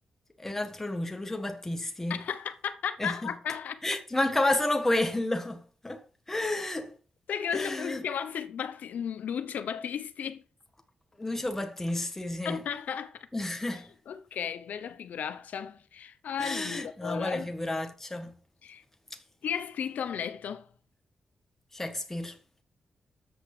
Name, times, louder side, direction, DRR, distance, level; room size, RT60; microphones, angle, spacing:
voice 1, 0.4-2.2 3.0-3.3 3.8-7.0 7.5-8.0 11.2-12.6 13.3-13.9 16.4-18.3 19.1-19.2 21.7-22.3, left 1 dB, 10° left, 1.7 m, -31 dB
voice 2, 2.1-3.8 7.3-10.4 12.4-13.3 14.1-17.5 18.6-18.8 19.4-20.7, left 8 dB, 75° left, 0.8 m, -34 dB
13.0 x 8.3 x 5.0 m
wide cardioid pair, 175°, 3 cm